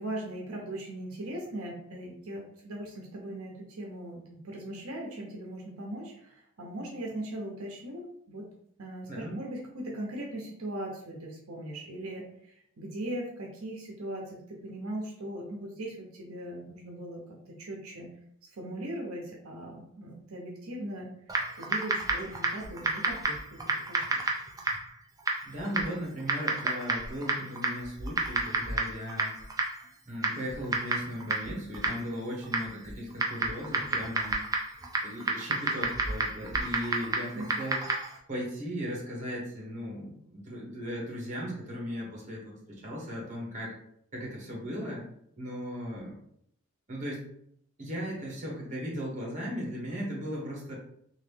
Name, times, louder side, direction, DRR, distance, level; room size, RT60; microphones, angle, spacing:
voice 1, 0.0-8.4 8.8-12.5 12.8-18.1 18.6-21.1 21.6-24.2 36.6-36.8 37.3-37.6, right 1 dB, 75° right, -1 dB, 0.7 m, -39 dB
Typing, 21.3-38.2, right 2 dB, 15° right, 0.4 m, -32 dB
voice 2, 25.4-29.3 30.1-34.4 35.0-37.8 38.3-43.8 44.1-45.0 45.4-46.2 46.9-47.2 47.8-50.7, equal, 35° right, -2 dB, 1.1 m, -37 dB
2.9 x 2.5 x 3.4 m, 0.69 s
head